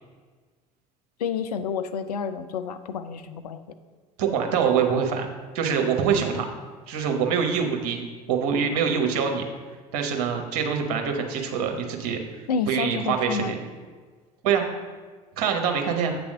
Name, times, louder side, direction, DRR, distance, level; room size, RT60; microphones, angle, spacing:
voice 1, 1.2-3.6 12.5-13.6, left 6 dB, 80° left, 10 dB, 0.5 m, -29 dB
voice 2, 4.2-5.3 5.5-6.5 6.9-9.4 9.9-13.6 14.4-14.6 15.4-16.2, right 7 dB, 65° right, 3 dB, 1.1 m, -25 dB
7.8 x 3.4 x 6.3 m, 1.5 s
hypercardioid pair, 70°, 20 cm